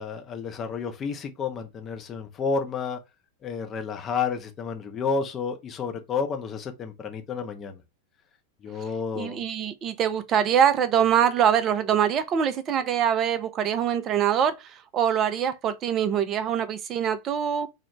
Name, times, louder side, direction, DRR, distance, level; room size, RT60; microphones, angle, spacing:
voice 1, 0.0-3.0 3.4-7.8 8.6-9.4, left 5 dB, 25° left, 0.5 m, -31 dB
voice 2, 9.2-17.7, right 9 dB, 30° right, 0.3 m, -24 dB
2.3 x 2.0 x 3.0 m
figure-of-eight pair, 90°, 0 cm